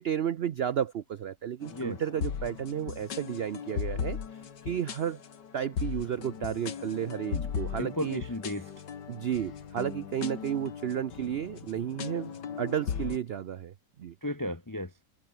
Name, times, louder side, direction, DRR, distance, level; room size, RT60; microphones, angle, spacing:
voice 1, 0.0-4.2 4.6-5.2 5.5-8.2 9.1-13.7 14.0-14.1, right 9 dB, 80° right, 0.5 m, -32 dB
sound 1, 1.6-13.2, left 7 dB, 90° left, 2.3 m, -38 dB
voice 2, 7.8-8.7 14.2-14.9, left 1 dB, 25° left, 0.4 m, -34 dB
omnidirectional pair, 1.8 m